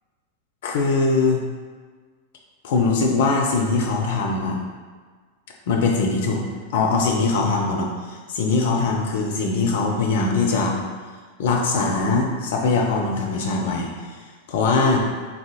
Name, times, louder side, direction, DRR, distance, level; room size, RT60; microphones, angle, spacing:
voice 1, 0.6-1.4 2.6-4.6 5.7-6.4 6.7-10.8 11.4-14.2 14.5-15.0, left 3 dB, 55° left, 0 dB, 0.5 m, -21 dB
3.5 x 3.4 x 2.2 m, 1.5 s
figure-of-eight pair, 90°, 0 cm